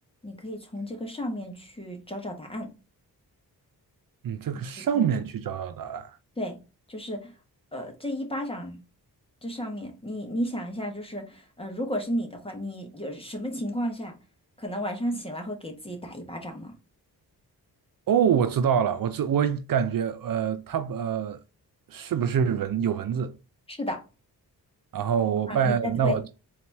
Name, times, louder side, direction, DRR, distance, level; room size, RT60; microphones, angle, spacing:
voice 1, 0.2-2.7 4.9-5.1 6.4-6.6 6.9-7.3 7.7-8.8 9.4-14.1 14.6-16.7 23.7-24.0 25.5-25.8 26.0-26.2, equal, 15° left, 1.5 m, -33 dB
voice 2, 4.2-6.2 18.1-21.4 21.9-23.4 24.9-26.3, right 8 dB, 55° right, 0.5 m, -25 dB
4.0 x 3.0 x 3.4 m
cardioid pair, 60°, 40 cm